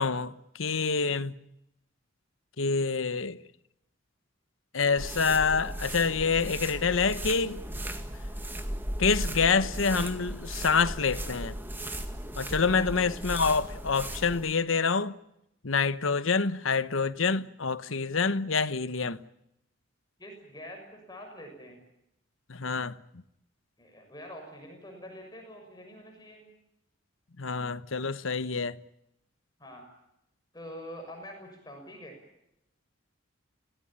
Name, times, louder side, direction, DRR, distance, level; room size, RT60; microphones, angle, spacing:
voice 1, 0.0-1.4 2.6-3.4 4.7-7.6 9.0-11.6 12.4-15.2 15.6-19.2 22.5-23.0 27.4-28.8, left 5 dB, 80° left, 1.0 m, -27 dB
sound 1, 5.0-14.5, right 1 dB, 10° right, 1.9 m, -36 dB
voice 2, 20.2-21.8 23.8-26.4 29.6-29.9 30.5-32.2, equal, 20° left, 6.5 m, -45 dB
27.0 x 18.5 x 8.9 m
head